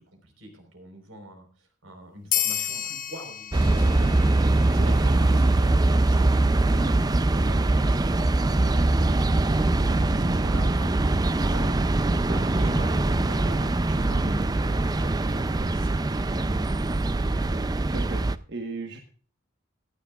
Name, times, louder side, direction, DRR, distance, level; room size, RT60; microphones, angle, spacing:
voice 1, 0.0-1.5 1.8-4.2 4.5-8.2 8.5-11.8 12.2-16.7, right 1 dB, 85° right, 4 dB, 4.3 m, -42 dB
sound 1, 2.3-5.3, left 10 dB, 45° left, 1.1 m, -31 dB
sound 2, 3.5-18.4, right 2 dB, 20° right, 0.4 m, -22 dB
voice 2, 17.8-18.2 18.5-19.0, right 3 dB, 55° right, 4 dB, 1.3 m, -36 dB
17.0 x 12.0 x 2.4 m, 0.43 s
head